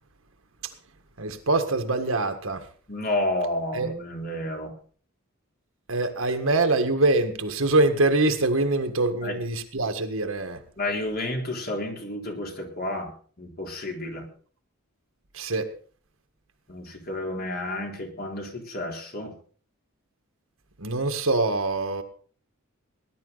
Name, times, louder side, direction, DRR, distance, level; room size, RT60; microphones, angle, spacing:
voice 1, 1.2-2.6 3.7-3.9 5.9-10.6 15.4-15.7 20.8-22.0, right 2 dB, 70° right, 7 dB, 1.7 m, -24 dB
voice 2, 2.9-4.7 9.2-9.4 10.8-14.3 16.7-19.3, left 1 dB, 45° left, 1 dB, 3.7 m, -31 dB
19.5 x 11.0 x 4.0 m, 0.44 s
head